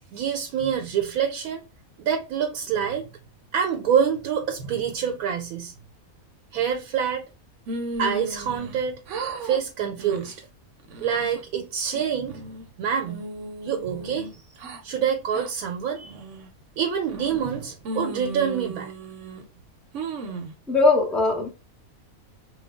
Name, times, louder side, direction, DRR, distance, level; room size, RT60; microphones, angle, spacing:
voice 1, 0.1-1.6 2.0-3.1 3.5-5.7 6.5-7.2 8.0-9.0 9.4-10.3 11.0-12.4 12.8-13.2 13.6-14.4 14.8-16.1 16.8-18.9, right 8 dB, 85° right, 1.1 m, -26 dB
sound 1, 7.7-8.8 9.1-9.6 10.0-10.4 10.8-11.4 11.9-12.7 13.1-14.8 15.3-15.5 16.0-16.5 17.1-17.5 17.9-19.4 19.9-20.5, right 2 dB, 65° right, 0.9 m, -35 dB
voice 2, 20.7-21.5, left 3 dB, ahead, 0.5 m, -20 dB
3.1 x 2.2 x 3.4 m
omnidirectional pair, 1.5 m